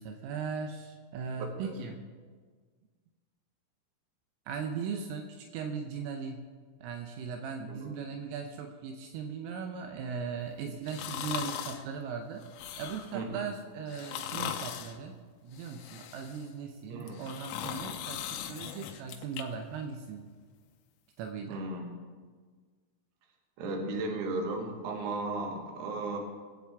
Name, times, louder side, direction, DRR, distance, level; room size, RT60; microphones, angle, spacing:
voice 1, 0.0-2.0 4.5-6.4 6.8-12.5 12.8-15.2 15.4-20.3 21.2-21.6, right 6 dB, 80° right, 4 dB, 3.3 m, -38 dB
sound 1, 10.9-11.8 12.4-13.2 13.9-15.0 15.5-16.5 17.0-19.4 19.8-19.9, left 10 dB, 85° left, 3.4 m, -39 dB
voice 2, 13.1-13.5 16.9-17.3 21.5-22.0 23.6-26.2, right 2 dB, 65° right, 2 dB, 3.0 m, -35 dB
21.5 x 8.4 x 3.5 m, 1.5 s
omnidirectional pair, 6.0 m